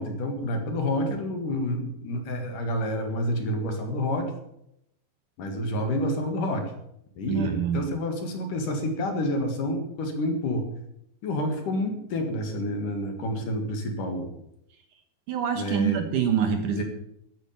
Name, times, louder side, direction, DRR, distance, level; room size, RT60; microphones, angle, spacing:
voice 1, 0.0-4.3 5.4-6.6 7.2-10.7 11.2-14.3 15.6-16.0 16.7-16.8, left 1 dB, 60° left, 4 dB, 3.3 m, -28 dB
voice 2, 7.3-7.8 15.3-16.8, right 8 dB, 65° right, 6 dB, 2.4 m, -25 dB
14.0 x 9.1 x 7.0 m, 0.77 s
omnidirectional pair, 4.5 m